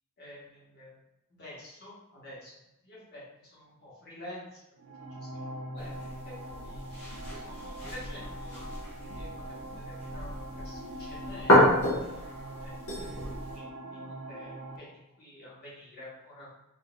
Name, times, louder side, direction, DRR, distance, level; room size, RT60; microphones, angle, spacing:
voice 1, 0.2-0.9 1.4-2.5 2.8-4.5 5.2-5.5 5.7-5.9 6.3-6.8 7.4-11.6 12.2-13.1 13.5-14.9 15.2-16.5, left 1 dB, 45° left, -7 dB, 1.3 m, -49 dB
sound 1, 4.8-14.8, right 1 dB, 90° right, 0.5 m, -42 dB
sound 2, 5.8-13.6, left 1 dB, 75° left, 1.3 m, -30 dB
3.6 x 2.6 x 2.4 m, 0.89 s
head